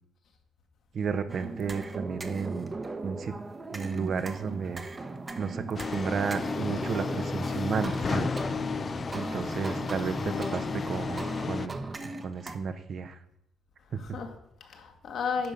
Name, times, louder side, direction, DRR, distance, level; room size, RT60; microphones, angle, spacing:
voice 1, 0.9-2.7 3.0-3.3 3.7-4.8 5.4-8.3 9.1-13.2 13.9-14.0, right 6 dB, 55° right, 0.8 m, -33 dB
sound 1, 1.3-12.6, right 3 dB, 25° right, 0.9 m, -38 dB
sound 2, 5.8-11.7, left 4 dB, 40° left, 0.4 m, -33 dB
voice 2, 10.2-10.8 13.8-15.5, left 5 dB, 65° left, 1.6 m, -35 dB
10.5 x 3.8 x 6.6 m
cardioid pair, 90°, 0 cm